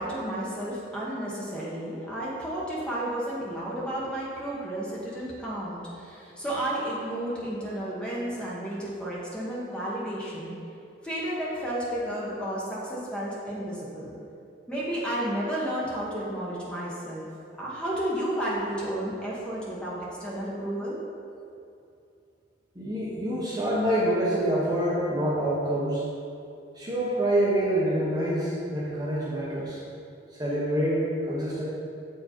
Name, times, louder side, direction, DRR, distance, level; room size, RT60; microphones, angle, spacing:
voice 1, 0.0-10.6 11.0-14.1 14.7-17.3 17.6-21.0, right 1 dB, 5° left, -7 dB, 1.1 m, -32 dB
voice 2, 22.7-26.1 26.7-29.8 30.4-31.6, right 1 dB, 20° right, -7 dB, 1.0 m, -26 dB
7.2 x 4.7 x 4.5 m, 2.6 s
head